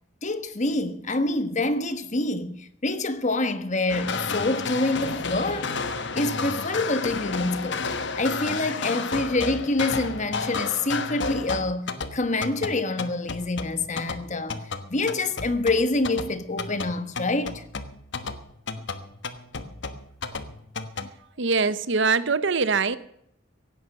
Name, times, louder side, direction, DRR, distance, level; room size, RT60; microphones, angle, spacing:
voice 1, 0.2-5.8 6.1-7.8 8.2-17.6, left 2 dB, 35° left, 1.2 m, -26 dB
sound 1, 3.9-21.1, left 4 dB, 60° left, 1.2 m, -32 dB
voice 2, 21.4-23.0, right 4 dB, 60° right, 0.8 m, -23 dB
16.5 x 11.0 x 6.6 m
head